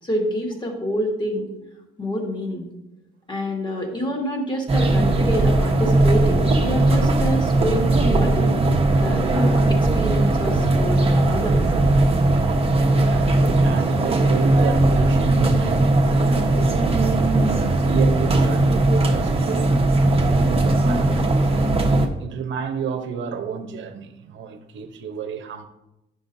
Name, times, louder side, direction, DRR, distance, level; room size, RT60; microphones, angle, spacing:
voice 1, 0.0-1.5 2.0-2.7 3.3-8.5 8.9-11.7, equal, 25° left, 2.0 m, -27 dB
sound 1, 4.7-22.1, right 2 dB, 30° right, 1.2 m, -18 dB
voice 2, 12.7-17.4 17.8-19.8 20.1-21.7 22.2-25.7, right 6 dB, 70° right, 0.9 m, -31 dB
10.0 x 6.4 x 2.7 m
cardioid pair, 90°, 20 cm